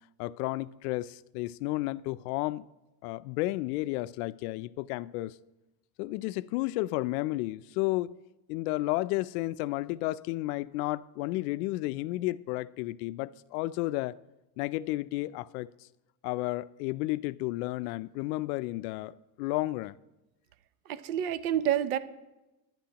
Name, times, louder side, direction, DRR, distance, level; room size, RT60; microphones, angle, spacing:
voice 1, 0.2-2.7 3.0-5.4 6.0-8.1 8.5-14.2 14.6-15.7 16.2-20.0, left 18 dB, 80° left, 0.5 m, -32 dB
voice 2, 20.9-22.0, right 10 dB, 85° right, 0.8 m, -28 dB
20.5 x 10.5 x 2.9 m
cardioid pair, 165°, 44 cm